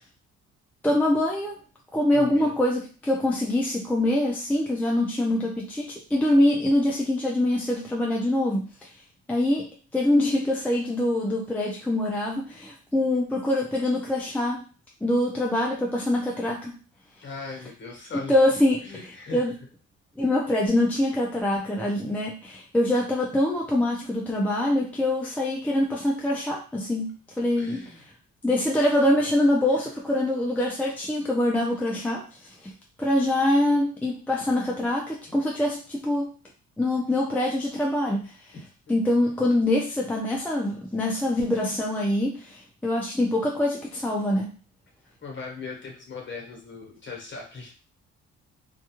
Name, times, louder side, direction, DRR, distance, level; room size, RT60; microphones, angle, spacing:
voice 1, 0.8-1.6 1.9-8.7 9.3-14.6 15.0-16.8 18.3-18.9 19.3-19.5 20.2-27.8 28.4-32.7 33.0-36.3 36.8-38.3 38.9-44.6, left 1 dB, 5° left, -2 dB, 0.5 m, -24 dB
voice 2, 2.1-2.6 17.2-18.4 18.8-19.5 27.6-28.2 38.5-38.6 45.2-47.7, left 4 dB, 40° left, 0 dB, 1.2 m, -39 dB
2.3 x 2.3 x 2.9 m, 0.35 s
cardioid pair, 90°, 30 cm